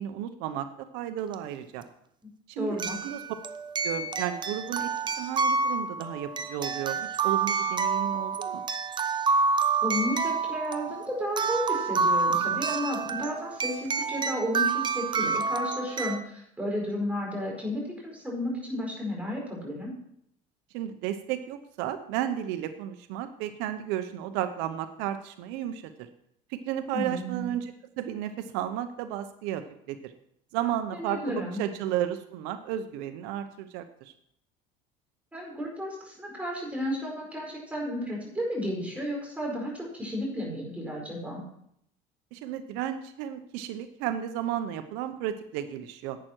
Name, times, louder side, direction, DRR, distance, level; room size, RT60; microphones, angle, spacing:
voice 1, 0.0-1.8 2.5-3.2 3.8-4.9 5.2-8.6 20.7-26.1 26.5-30.1 30.5-34.1 42.3-46.2, right 11 dB, 80° right, 10 dB, 0.8 m, -33 dB
sound 1, 1.3-1.4 2.8-16.2, right 5 dB, 25° right, 0.8 m, -28 dB
voice 2, 2.6-3.0 9.8-19.9 26.9-27.5 30.9-31.6 35.3-41.4, equal, 10° right, -2 dB, 4.8 m, -33 dB
11.0 x 8.9 x 4.5 m, 0.71 s
cardioid pair, 125°, 17 cm